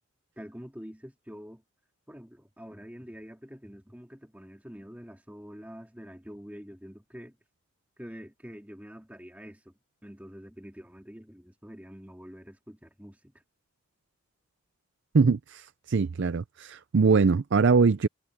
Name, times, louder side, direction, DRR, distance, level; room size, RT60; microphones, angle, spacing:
voice 1, 0.4-1.6 2.1-7.4 8.0-9.7 10.0-13.4, equal, 5° right, 2.2 m, -46 dB
voice 2, 15.1-18.1, right 4 dB, 55° right, 0.5 m, -22 dB
head